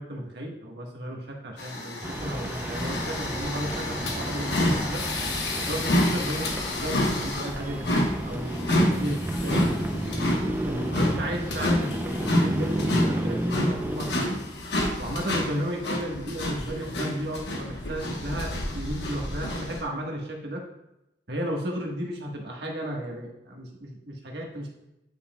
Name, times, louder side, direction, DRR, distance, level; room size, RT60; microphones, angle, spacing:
voice 1, 0.0-5.0 5.6-9.7 10.7-14.4 15.0-20.6 21.3-24.7, equal, 75° right, 0 dB, 1.3 m, -33 dB
sound 1, 1.6-19.8, left 1 dB, 85° left, 1.1 m, -29 dB
sound 2, 2.0-14.1, right 1 dB, 10° right, 0.5 m, -32 dB
9.6 x 5.5 x 2.2 m, 0.90 s
head